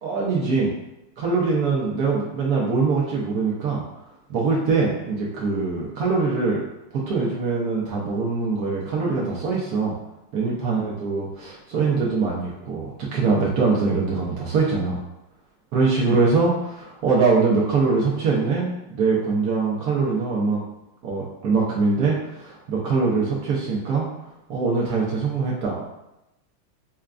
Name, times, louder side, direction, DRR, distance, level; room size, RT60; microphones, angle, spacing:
voice 1, 0.0-0.7 1.2-3.8 4.3-6.6 6.9-10.0 10.3-15.0 15.7-20.6 21.0-24.1 24.5-25.8, right 4 dB, 75° right, -4 dB, 0.8 m, -23 dB
5.6 x 2.2 x 2.4 m, 0.91 s
omnidirectional pair, 2.3 m